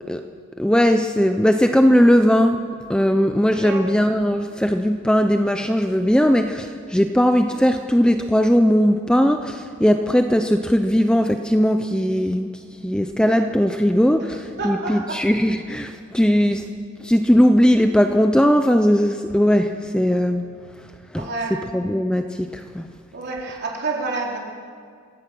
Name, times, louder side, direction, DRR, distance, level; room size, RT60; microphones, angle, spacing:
voice 1, 0.6-2.6 2.9-12.5 12.8-16.7 17.0-20.5 21.1-21.2 21.7-22.9, equal, 5° left, 6 dB, 0.6 m, -18 dB
voice 2, 14.6-15.2 21.2-21.6 23.1-24.4, right 3 dB, 50° right, -2 dB, 4.0 m, -28 dB
26.5 x 16.5 x 6.2 m, 2.2 s
head